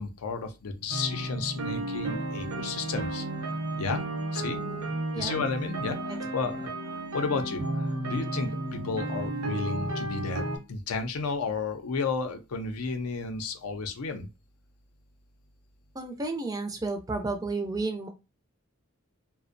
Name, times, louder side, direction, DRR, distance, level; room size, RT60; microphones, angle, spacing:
voice 1, 0.0-3.3 3.8-4.0 4.3-4.6 5.2-10.4 10.7-14.3, left 4 dB, 85° left, 0.5 m, -33 dB
sound 1, 0.9-10.6, right 2 dB, 85° right, 0.7 m, -33 dB
voice 2, 16.0-18.1, right 3 dB, 15° right, 0.3 m, -32 dB
2.4 x 2.0 x 2.5 m
head